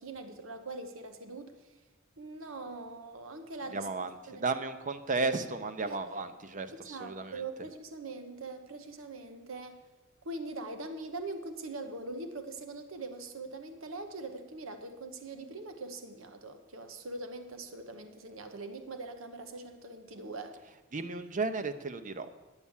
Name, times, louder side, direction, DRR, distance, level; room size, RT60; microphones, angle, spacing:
voice 1, 0.0-1.7 2.2-4.5 5.8-6.2 6.9-9.8 10.2-20.6, right 2 dB, 70° right, 7 dB, 1.0 m, -42 dB
voice 2, 3.7-7.4 20.9-22.3, right 3 dB, 40° right, 10 dB, 0.7 m, -34 dB
9.7 x 8.5 x 7.2 m, 1.2 s
head